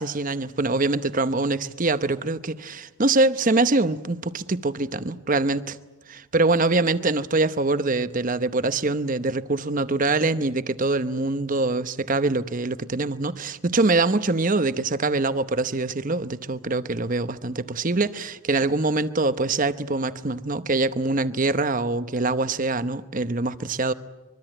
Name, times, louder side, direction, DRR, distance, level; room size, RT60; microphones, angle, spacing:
voice 1, 0.0-5.8 6.1-23.9, right 3 dB, 40° right, 0.9 m, -24 dB
24.5 x 23.0 x 9.0 m
head